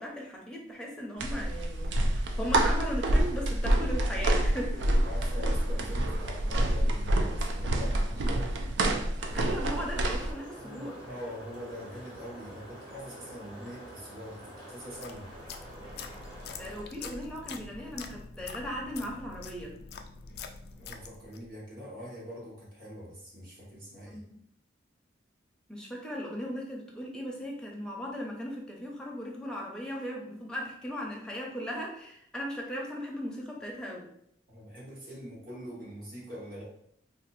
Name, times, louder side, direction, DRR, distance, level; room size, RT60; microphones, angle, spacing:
voice 1, 0.0-4.8 9.3-11.0 16.6-19.7 24.1-24.2 25.7-34.1, equal, 5° left, -2 dB, 0.6 m, -37 dB
sound 1, 1.2-10.3, right 1 dB, 75° right, 0.4 m, -27 dB
voice 2, 5.0-8.5 10.6-15.3 20.8-24.2 34.5-36.6, equal, 50° right, -6 dB, 1.1 m, -43 dB
sound 2, 9.2-16.8, right 1 dB, 30° right, 1.1 m, -47 dB
sound 3, 14.8-21.5, left 5 dB, 60° left, 0.3 m, -45 dB
2.6 x 2.4 x 4.1 m, 0.72 s
head